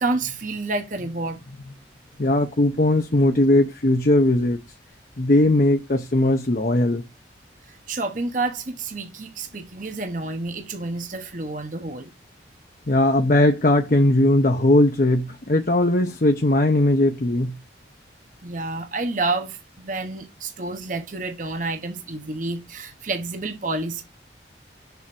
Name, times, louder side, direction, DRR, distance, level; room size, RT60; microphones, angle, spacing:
voice 1, 0.0-1.4 7.7-12.1 18.4-24.0, right 3 dB, 45° right, 1.0 m, -29 dB
voice 2, 2.2-4.6 5.2-7.0 12.9-17.6, left 1 dB, 50° left, 0.8 m, -19 dB
7.0 x 3.6 x 6.1 m
head